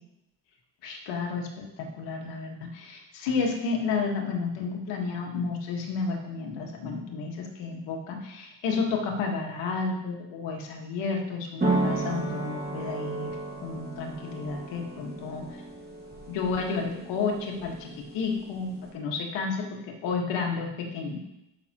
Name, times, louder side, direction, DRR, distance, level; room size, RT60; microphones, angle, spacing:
voice 1, 0.8-13.3 13.6-15.5 16.3-21.2, left 4 dB, 90° left, 1 dB, 1.6 m, -31 dB
sound 1, 11.6-18.9, right 2 dB, 20° right, 2.2 m, -33 dB
12.0 x 5.7 x 3.0 m, 0.90 s
cardioid pair, 110°, 42 cm